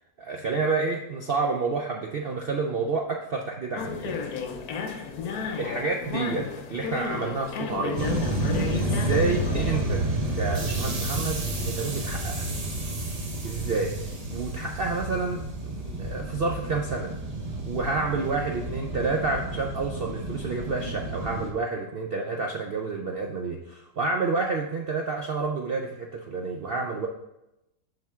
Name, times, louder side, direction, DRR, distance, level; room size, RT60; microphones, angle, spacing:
voice 1, 0.2-4.2 5.6-8.1 8.7-12.5 13.4-17.1 17.7-27.1, right 4 dB, 65° right, 1 dB, 0.5 m, -29 dB
sound 1, 3.8-9.8, left 5 dB, 70° left, 1.2 m, -33 dB
sound 2, 8.0-21.5, right 1 dB, 30° right, 0.8 m, -30 dB
7.3 x 5.7 x 3.5 m, 0.88 s
omnidirectional pair, 1.7 m